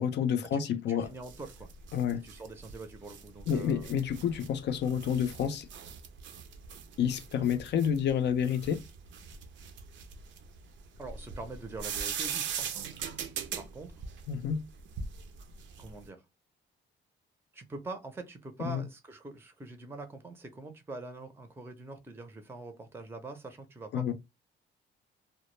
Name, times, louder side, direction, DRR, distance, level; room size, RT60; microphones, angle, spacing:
voice 1, 0.0-1.1 1.9-2.2 3.5-5.7 7.0-8.8 14.3-14.7 18.6-18.8 23.9-24.1, left 8 dB, 60° left, 0.4 m, -29 dB
voice 2, 0.7-1.7 2.2-3.9 11.0-12.9 13.5-13.9 15.8-16.2 17.5-24.1, right 2 dB, 10° right, 0.5 m, -44 dB
sound 1, 1.0-16.1, right 7 dB, 65° right, 0.5 m, -41 dB
2.0 x 2.0 x 3.0 m
cardioid pair, 90°, 20 cm